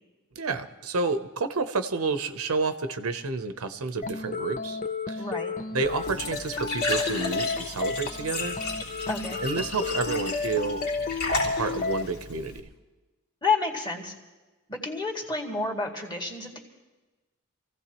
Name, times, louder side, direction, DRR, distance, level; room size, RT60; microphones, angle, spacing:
voice 1, 0.4-4.8 5.1-5.2 5.7-8.6 9.4-10.8 11.4-12.7, right 4 dB, 75° right, 9 dB, 0.8 m, -30 dB
sound 1, 4.0-12.0, left 4 dB, 35° left, 0.6 m, -32 dB
voice 2, 5.2-5.5 9.1-9.4 13.4-14.1 14.7-16.6, left 4 dB, 20° left, 0 dB, 2.1 m, -30 dB
Glass / Trickle dribble / Fill (with liquid), 5.8-12.6, left 2 dB, 80° left, 3.5 m, -34 dB
27.0 x 15.5 x 3.0 m, 1.2 s
head